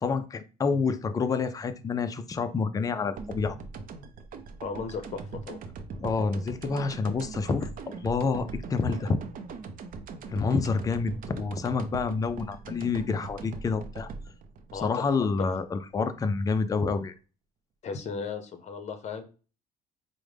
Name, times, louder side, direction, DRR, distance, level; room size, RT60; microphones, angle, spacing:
voice 1, 0.0-3.6 6.0-9.2 10.3-14.1 14.8-17.1, left 4 dB, 20° left, 9 dB, 0.3 m, -28 dB
sound 1, 3.2-16.0, right 4 dB, 55° right, 0.5 m, -41 dB
voice 2, 4.6-5.6 14.7-15.1 15.4-15.5 17.8-19.2, left 5 dB, 40° left, 8 dB, 0.7 m, -36 dB
4.8 x 2.1 x 3.3 m, 0.35 s
cardioid pair, 110°, 17 cm